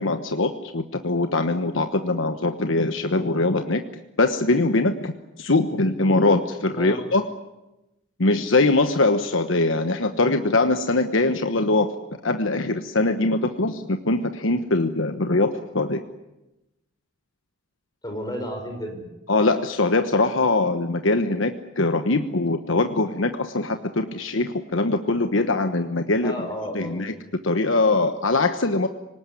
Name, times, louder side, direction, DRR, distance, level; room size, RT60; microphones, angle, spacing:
voice 1, 0.0-3.8 4.2-5.1 5.4-7.3 8.2-11.9 12.2-16.0 19.3-26.5 26.7-27.1 27.4-28.9, left 2 dB, 75° left, 8 dB, 1.2 m, -22 dB
voice 2, 18.0-19.1 26.2-27.0, equal, 20° left, 4 dB, 5.4 m, -32 dB
25.5 x 19.5 x 9.9 m, 0.97 s
head